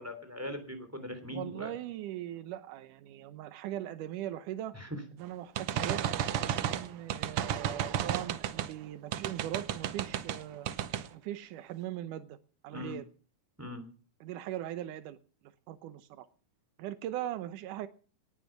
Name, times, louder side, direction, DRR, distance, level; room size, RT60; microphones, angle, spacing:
voice 1, 0.0-1.7 4.7-5.0 12.7-13.0 13.6-13.8, left 1 dB, 5° right, 9 dB, 2.7 m, -40 dB
voice 2, 1.3-4.8 5.1-6.1 6.6-10.7 11.1-12.4 12.6-13.1 14.2-15.2 15.7-16.3 16.8-17.9, right 12 dB, 90° right, 12 dB, 2.4 m, -40 dB
sound 1, 5.6-8.7 9.1-10.4 10.7-11.1, right 10 dB, 70° right, 1.4 m, -32 dB
18.5 x 10.0 x 5.9 m, 0.40 s
omnidirectional pair, 3.5 m